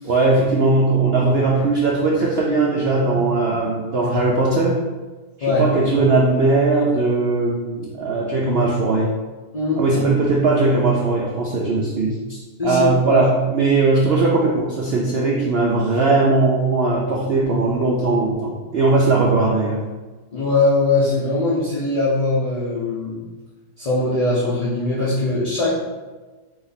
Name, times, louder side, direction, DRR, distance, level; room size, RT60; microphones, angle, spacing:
voice 1, 0.0-4.8 5.6-9.1 9.8-19.8, right 3 dB, 80° right, -3 dB, 0.5 m, -19 dB
voice 2, 12.6-13.3 20.3-23.3 23.8-25.7, left 2 dB, 40° left, -9 dB, 0.5 m, -21 dB
4.2 x 2.8 x 3.9 m, 1.3 s
omnidirectional pair, 1.7 m